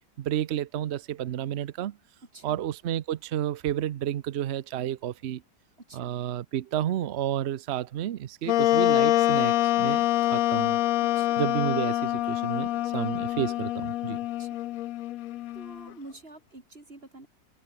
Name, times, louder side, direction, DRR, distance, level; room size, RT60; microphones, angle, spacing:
voice 1, 0.2-2.0 2.4-5.4 5.9-10.8 11.4-14.2, right 11 dB, 80° right, 0.6 m, -31 dB
voice 2, 2.3-2.6 5.8-6.1 11.0-11.4 14.4-14.6 15.5-17.3, right 2 dB, 30° right, 4.4 m, -47 dB
Wind instrument woodwind instrument, 8.5-15.9, left 14 dB, 70° left, 0.8 m, -25 dB
omnidirectional pair, 1.9 m